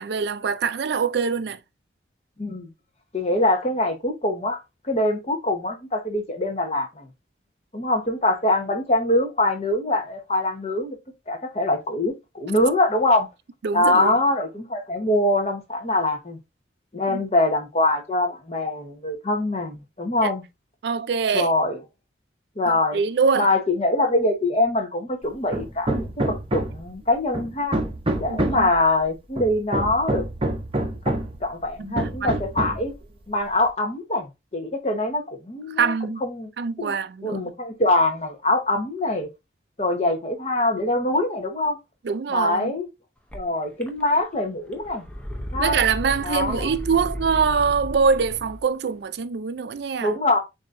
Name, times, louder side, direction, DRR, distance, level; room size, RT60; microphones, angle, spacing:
voice 1, 0.0-1.6 13.6-14.1 17.1-17.2 20.2-20.3 20.8-21.5 22.7-23.5 28.3-28.7 31.8-32.4 35.8-36.2 36.6-37.4 42.0-42.7 45.6-50.1, right 5 dB, 65° right, 0.4 m, -24 dB
voice 2, 3.1-4.6 4.9-7.1 7.7-11.0 11.3-13.3 13.7-16.4 16.9-20.4 21.3-21.8 22.6-23.0 23.4-27.8 28.2-30.2 31.1-31.2 31.4-32.9 33.3-35.9 36.2-36.5 36.8-36.9 37.2-39.3 39.8-41.8 42.3-42.9 43.3-45.0 45.5-45.8 46.2-46.7 50.0-50.4, left 2 dB, 35° left, 1.1 m, -23 dB
Hammer, 25.5-26.9 27.3-28.7 29.4-31.4 32.0-32.9, right 1 dB, 30° right, 0.7 m, -26 dB
sound 1, 43.3-43.4 43.8-44.4 44.7-48.6, equal, 5° left, 0.6 m, -33 dB
7.3 x 2.8 x 2.5 m
head